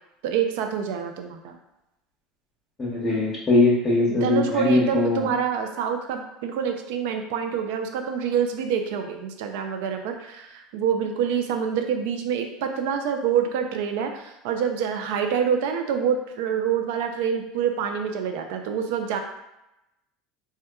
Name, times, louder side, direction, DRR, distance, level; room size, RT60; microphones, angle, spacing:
voice 1, 0.2-1.5 4.1-19.2, right 7 dB, 75° right, 5 dB, 0.3 m, -26 dB
voice 2, 2.8-5.2, left 2 dB, 25° left, -7 dB, 0.8 m, -21 dB
2.9 x 2.2 x 2.2 m, 0.92 s
supercardioid pair, 110°, 0 cm